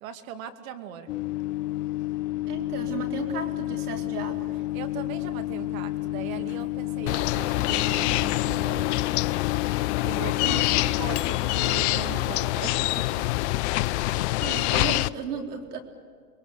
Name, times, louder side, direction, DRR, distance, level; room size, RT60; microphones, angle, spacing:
voice 1, 0.0-1.1 4.7-9.1 10.0-13.2, right 9 dB, 65° right, 7 dB, 2.5 m, -39 dB
Microwave oven, 1.1-14.5, left 17 dB, 90° left, 0.6 m, -32 dB
voice 2, 2.5-4.5 12.1-12.5 14.4-15.8, right 6 dB, 85° right, 3 dB, 4.1 m, -35 dB
sound 1, 7.1-15.1, left 17 dB, 50° left, 0.7 m, -26 dB
28.5 x 22.0 x 6.8 m, 2.1 s
hypercardioid pair, 115°, 45 cm